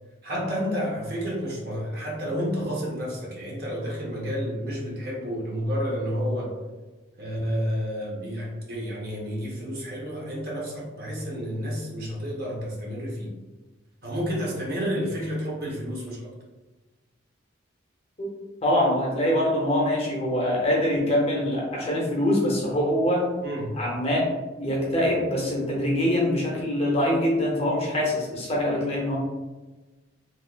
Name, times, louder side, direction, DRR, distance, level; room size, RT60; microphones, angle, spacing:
voice 1, 0.2-6.5 7.2-13.3 14.0-16.2 23.4-23.8, equal, 50° right, -3 dB, 0.8 m, -30 dB
voice 2, 18.6-23.2 23.7-24.3 24.6-29.2, left 1 dB, 30° left, -3 dB, 0.6 m, -24 dB
3.3 x 2.3 x 2.4 m, 1.2 s
head